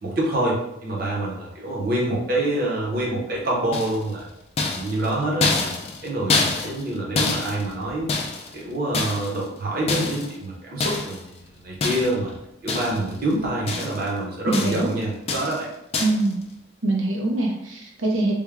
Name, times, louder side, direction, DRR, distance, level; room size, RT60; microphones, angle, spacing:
voice 1, 0.0-4.3 4.6-5.7 6.0-8.1 8.5-11.2 11.6-12.3 12.6-15.7, right 1 dB, 50° right, -3 dB, 0.8 m, -26 dB
sound 1, 3.7-4.2 4.6-6.9 7.1-8.6 8.9-9.5 9.9-10.4 10.8-11.2 11.8-12.3 12.7-13.2 13.4-14.1 14.5-14.9 15.3-15.6 15.9-16.3, left 3 dB, 30° left, 0.4 m, -26 dB
voice 2, 14.5-14.9 16.0-16.4 16.8-18.3, right 2 dB, 90° right, -1 dB, 0.7 m, -23 dB
3.5 x 2.2 x 3.4 m, 0.86 s
head